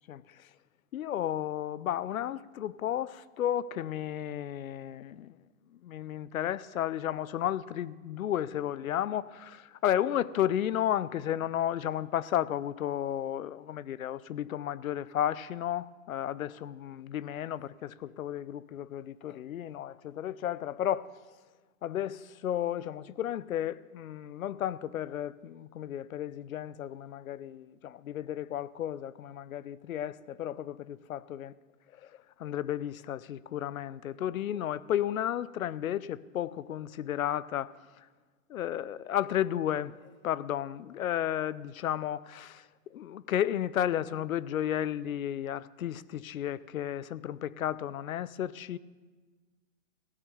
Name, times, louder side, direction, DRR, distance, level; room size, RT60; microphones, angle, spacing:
voice 1, 0.1-0.5 0.9-5.3 5.8-21.1 21.8-31.5 31.9-32.1 32.4-38.1 38.5-40.0 40.2-48.8, left 11 dB, 85° left, 0.7 m, -33 dB
16.0 x 7.4 x 7.0 m
hypercardioid pair, 150°, 40 cm